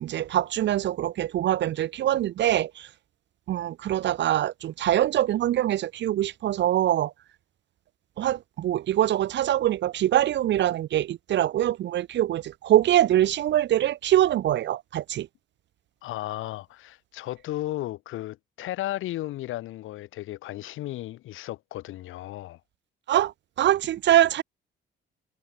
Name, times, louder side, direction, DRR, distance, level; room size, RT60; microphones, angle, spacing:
voice 1, 0.0-2.9 3.5-7.1 8.2-15.3 23.1-23.3 23.6-24.4, right 12 dB, 65° right, 0.6 m, -23 dB
voice 2, 16.0-22.6, left 15 dB, 90° left, 5.7 m, -34 dB
cardioid pair, 90°, 20 cm